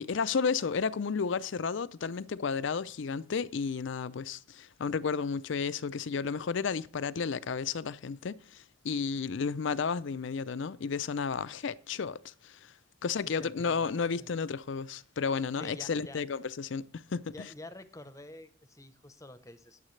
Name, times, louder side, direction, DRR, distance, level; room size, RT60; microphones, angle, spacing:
voice 1, 0.0-12.7 13.0-17.5, left 5 dB, 65° left, 0.5 m, -32 dB
voice 2, 13.4-13.9 14.2-14.3 15.6-16.2 17.3-19.8, left 1 dB, 15° left, 0.8 m, -48 dB
20.0 x 7.4 x 3.2 m
head